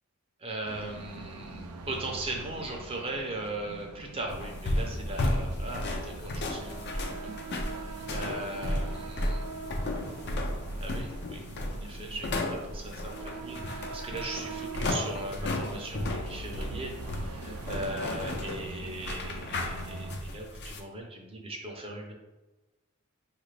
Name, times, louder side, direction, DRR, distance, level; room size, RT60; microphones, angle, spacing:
voice 1, 0.4-9.5 10.8-11.4 11.7-13.2 13.4-22.1, right 2 dB, 25° right, 1 dB, 0.5 m, -39 dB
sound 1, 0.6-20.2, right 4 dB, 90° right, 0.4 m, -43 dB
sound 2, 4.3-20.8, left 1 dB, 50° left, 0.5 m, -34 dB
5.0 x 2.4 x 3.2 m, 1.1 s
head